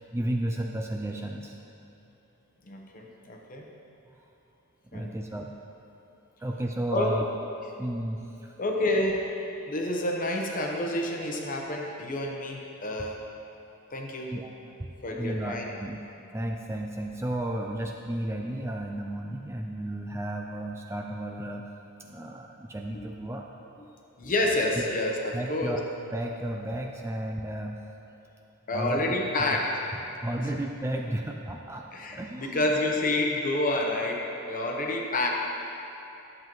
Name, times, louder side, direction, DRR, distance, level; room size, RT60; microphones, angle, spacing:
voice 1, 0.0-1.6 4.1-4.3 4.9-5.5 6.4-7.3 7.8-8.5 14.3-14.5 14.8-14.9 15.1-16.0 16.3-21.7 22.0-23.5 25.3-25.8 26.1-27.8 28.7-29.0 30.2-31.9 32.1-32.6, right 1 dB, 10° right, 1 dB, 0.3 m, -33 dB
voice 2, 2.6-3.6 4.9-5.2 6.9-7.1 8.6-9.3 9.7-13.2 13.9-14.3 15.0-15.7 22.9-23.0 24.2-25.8 28.7-29.9 31.9-35.3, left 1 dB, 40° left, 0 dB, 0.9 m, -29 dB
11.5 x 7.5 x 3.1 m, 2.8 s
head